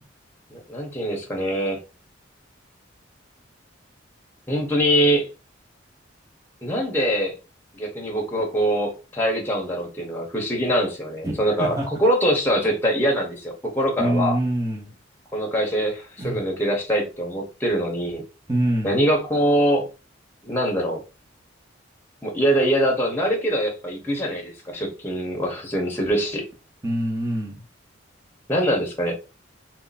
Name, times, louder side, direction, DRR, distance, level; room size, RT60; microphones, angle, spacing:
voice 1, 0.5-1.8 4.5-5.3 6.6-7.3 7.7-14.4 15.3-18.2 18.8-19.9 20.4-21.0 22.2-26.5 28.5-29.1, equal, 10° left, 0 dB, 1.1 m, -23 dB
voice 2, 11.2-11.8 14.0-14.9 16.2-16.4 18.5-18.9 26.8-27.6, right 1 dB, 15° right, -2 dB, 1.2 m, -25 dB
3.4 x 2.9 x 4.1 m, 0.31 s
head